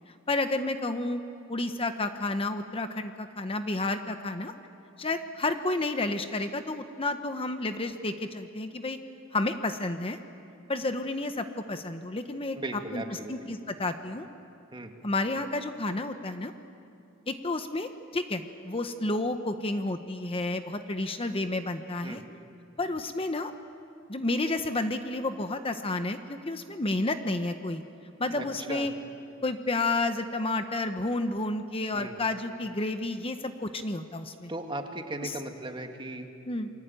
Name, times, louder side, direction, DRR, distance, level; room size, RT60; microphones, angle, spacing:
voice 1, 0.1-1.2 1.5-4.5 5.0-9.0 9.3-10.2 10.7-12.6 12.9-14.3 15.0-16.5 17.3-22.2 22.8-23.5 24.1-27.8 28.2-28.9 29.4-34.5 35.2-35.3 36.5-36.7, left 2 dB, 30° left, 8 dB, 1.0 m, -31 dB
voice 2, 12.6-13.5 14.7-14.9 22.0-22.2 28.4-28.9 31.9-32.2 34.5-36.3, right 2 dB, 25° right, 5 dB, 1.9 m, -37 dB
28.5 x 23.0 x 9.1 m, 2.6 s
head